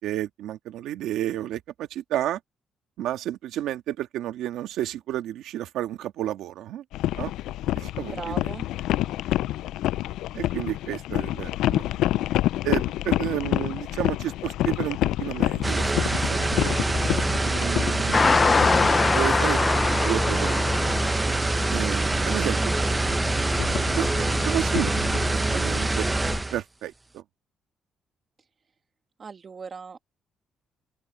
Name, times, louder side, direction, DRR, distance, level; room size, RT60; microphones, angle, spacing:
voice 1, 0.0-2.4 3.0-6.8 7.2-7.3 7.8-8.4 10.3-11.8 12.6-15.9 16.3-16.7 17.4-18.7 19.1-19.6 20.0-20.6 21.7-22.6 24.0-26.1 26.5-27.2, right 12 dB, 85° right, 1.9 m, -31 dB
sound 1, 6.9-19.0 19.8-21.8 22.2-25.9, left 14 dB, 90° left, 0.3 m, -29 dB
voice 2, 8.0-8.7 21.2-21.5 29.2-30.0, right 5 dB, 40° right, 2.1 m, -38 dB
sound 2, 15.6-26.6, right 2 dB, 20° right, 0.8 m, -25 dB
sound 3, 18.1-26.4, left 4 dB, 35° left, 0.5 m, -26 dB
open air
cardioid pair, 90°, 0 cm